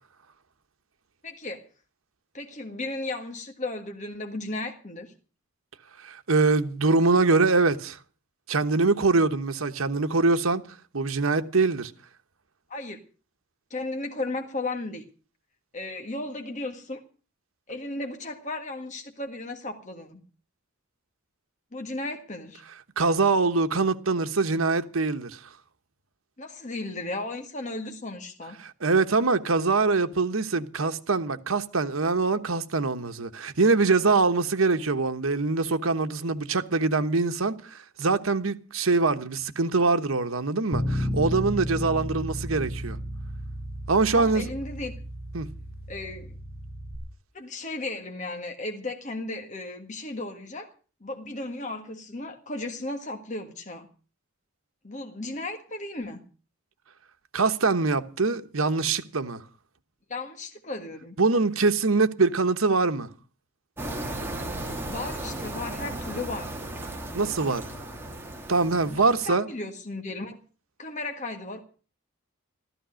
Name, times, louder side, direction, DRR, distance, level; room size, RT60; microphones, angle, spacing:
voice 1, 1.2-1.7 2.3-5.1 12.7-13.0 13.7-15.0 15.7-17.0 17.7-20.2 21.7-22.6 26.4-28.6 44.1-44.9 45.9-46.4 47.3-50.7 51.0-53.9 54.8-56.3 60.1-61.2 64.9-66.6 68.9-70.4 70.8-71.6, left 2 dB, 35° left, 1.7 m, -35 dB
voice 2, 6.0-8.0 8.5-10.6 10.9-11.9 23.0-25.4 28.6-43.0 43.9-44.5 45.3-45.5 57.3-59.4 61.2-63.1 67.1-67.6 68.5-69.5, right 3 dB, 90° right, 1.2 m, -24 dB
Bass guitar, 40.7-47.0, equal, 15° left, 6.3 m, -33 dB
sound 1, 63.8-69.3, right 1 dB, 10° right, 2.7 m, -35 dB
14.5 x 14.0 x 6.3 m
head